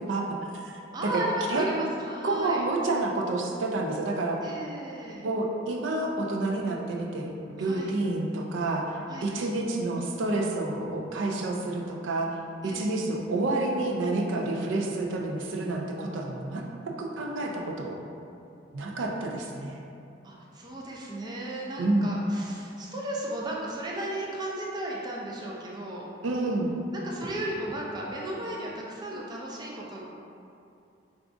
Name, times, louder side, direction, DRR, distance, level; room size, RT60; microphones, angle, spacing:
voice 1, 0.1-1.2 1.5-1.7 2.2-4.4 5.2-7.3 7.6-12.3 12.6-16.6 17.0-18.0 18.7-19.8 21.8-22.1 26.2-26.7, right 2 dB, 90° right, 0 dB, 0.4 m, -29 dB
voice 2, 0.9-2.6 4.4-5.3 7.6-7.9 9.1-9.3 12.6-12.9 20.2-26.1 26.9-30.0, right 1 dB, 20° right, -4 dB, 0.4 m, -35 dB
4.9 x 2.4 x 2.4 m, 2.6 s
head